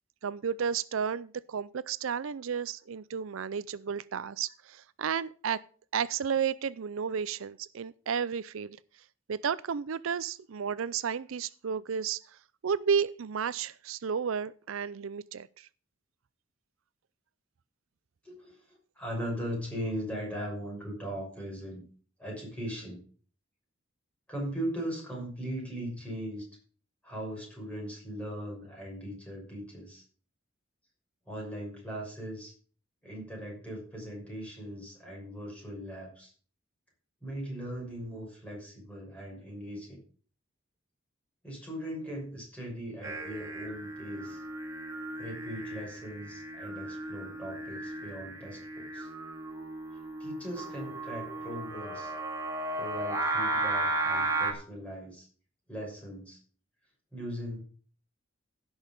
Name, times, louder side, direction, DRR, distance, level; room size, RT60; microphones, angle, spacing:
voice 1, 0.2-5.6 5.9-8.8 9.3-12.4 12.6-15.7, right 7 dB, 75° right, 0.5 m, -32 dB
voice 2, 18.2-21.8 22.2-23.0 24.3-26.5 27.0-30.0 31.3-32.5 33.0-36.3 37.2-40.0 41.4-44.4 45.2-49.1 50.2-52.1 52.7-55.3 55.7-56.4 57.1-57.6, equal, 5° left, 6.4 m, -39 dB
Singing, 43.0-54.5, right 2 dB, 15° right, 2.4 m, -35 dB
15.5 x 6.3 x 5.3 m
head